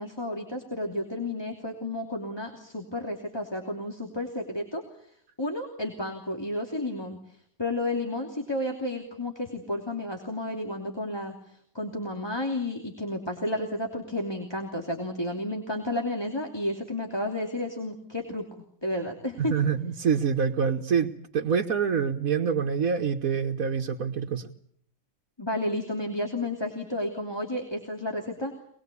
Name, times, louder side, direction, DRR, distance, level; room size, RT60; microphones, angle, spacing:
voice 1, 0.0-4.8 5.4-18.4 18.8-19.5 25.4-28.5, left 1 dB, 20° left, 1 dB, 3.0 m, -32 dB
voice 2, 19.4-24.5, right 6 dB, 90° right, 2 dB, 1.7 m, -26 dB
25.5 x 21.5 x 8.4 m, 0.67 s
omnidirectional pair, 1.4 m